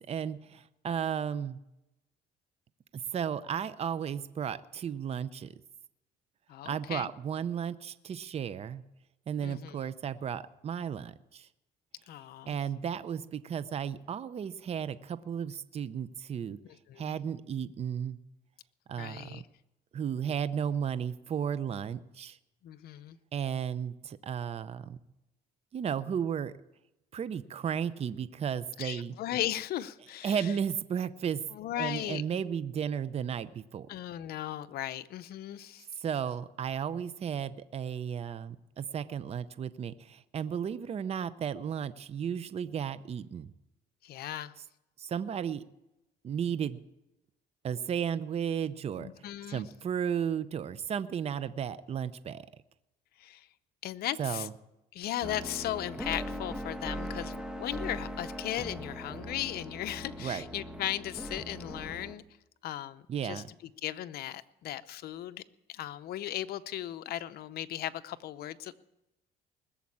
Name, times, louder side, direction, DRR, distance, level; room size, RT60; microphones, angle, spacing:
voice 1, 0.0-1.6 2.9-5.5 6.6-8.8 9.3-11.5 12.5-16.6 17.0-18.2 18.9-19.4 19.9-22.4 23.3-25.0 25.7-26.5 27.1-29.1 30.2-31.4 31.8-33.9 36.0-43.5 45.0-45.6 46.2-46.8 47.6-49.1 49.5-52.5 54.2-54.5 60.2-60.5 63.1-63.5, right 8 dB, 40° right, 15 dB, 0.6 m, -34 dB
voice 2, 6.5-7.1 9.4-9.8 12.1-12.6 16.6-17.1 18.9-19.4 22.6-23.2 28.8-30.5 31.5-32.2 33.9-35.9 44.0-44.5 49.0-49.6 53.2-53.5 53.8-54.5 54.9-62.2 62.6-63.4 63.8-65.4 65.7-68.7, left 13 dB, 65° left, 12 dB, 0.7 m, -37 dB
sound 1, 55.2-62.2, equal, 5° right, 1.1 m, -40 dB
20.0 x 7.4 x 8.6 m, 0.92 s
cardioid pair, 110°, 17 cm